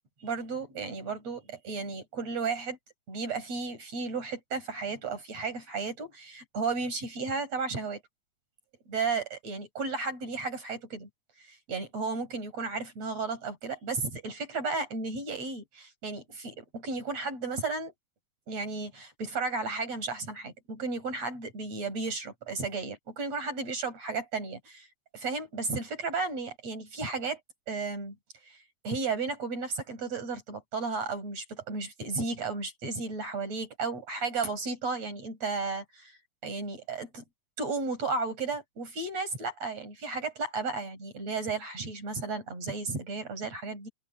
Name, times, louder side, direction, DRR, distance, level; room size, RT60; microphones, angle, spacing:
voice 1, 0.2-2.8 3.1-8.0 8.9-11.1 11.5-17.9 18.5-24.9 25.1-27.4 27.7-28.2 28.5-28.6 28.8-36.2 36.4-37.2 37.6-43.9, right 4 dB, 45° right, 7.5 m, -34 dB
open air
omnidirectional pair, 4.2 m